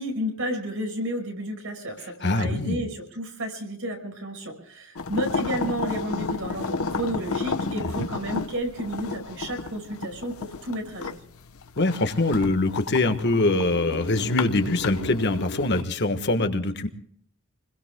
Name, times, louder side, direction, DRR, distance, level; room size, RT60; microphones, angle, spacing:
voice 1, 0.0-11.2, equal, 70° right, 4 dB, 5.3 m, -32 dB
voice 2, 2.2-2.8 7.8-7.9 11.8-16.9, left 2 dB, 55° left, 8 dB, 1.3 m, -23 dB
sound 1, 5.0-15.8, left 4 dB, 80° left, 0.9 m, -32 dB
28.5 x 21.5 x 2.2 m, 0.64 s
head